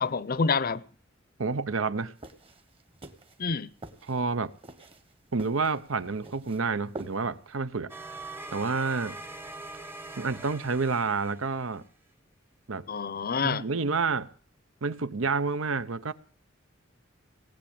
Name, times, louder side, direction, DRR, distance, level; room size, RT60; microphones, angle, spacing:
voice 1, 0.0-0.8 3.4-3.7 12.9-13.6, left 5 dB, 45° left, 0.7 m, -27 dB
voice 2, 1.4-2.1 4.0-4.5 5.3-7.9 8.5-9.2 10.2-11.8 12.7-12.9 13.4-14.3 14.8-16.1, right 4 dB, 80° right, 0.8 m, -29 dB
sound 1, 2.2-7.5, right 2 dB, 30° right, 1.2 m, -47 dB
sound 2, 7.9-11.8, right 2 dB, 10° right, 0.9 m, -43 dB
18.5 x 7.5 x 8.6 m
head